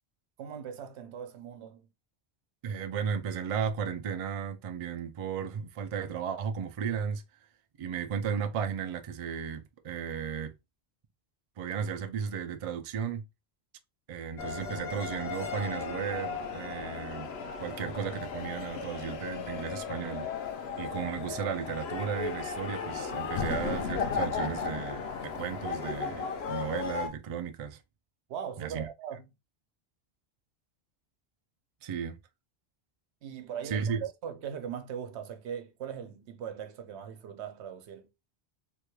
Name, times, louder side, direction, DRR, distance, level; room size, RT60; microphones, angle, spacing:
voice 1, 0.4-1.9 28.3-29.2 33.2-38.1, right 8 dB, 90° right, 0.9 m, -40 dB
voice 2, 2.6-7.2 7.8-10.5 11.6-13.2 14.1-17.3 17.6-20.3 20.7-27.8 28.6-28.9 31.8-32.2 33.6-34.0, right 7 dB, 55° right, 0.4 m, -34 dB
sound 1, 14.4-27.1, left 6 dB, 70° left, 0.9 m, -35 dB
3.5 x 2.2 x 3.0 m
omnidirectional pair, 1.1 m